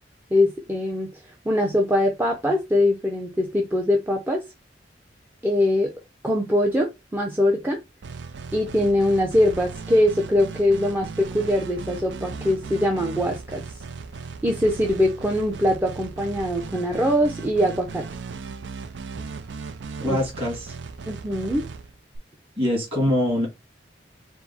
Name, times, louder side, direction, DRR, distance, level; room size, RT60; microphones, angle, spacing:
voice 1, 0.3-1.1 1.4-4.4 5.4-5.9 6.2-7.8 8.5-13.6 14.4-18.0 20.1-20.2 21.1-21.6, left 1 dB, 10° right, 0.5 m, -22 dB
sound 1, 8.0-22.2, right 4 dB, 85° right, 0.4 m, -37 dB
voice 2, 20.0-20.8 22.6-23.5, left 1 dB, 35° right, 2.0 m, -23 dB
4.5 x 2.0 x 4.1 m
head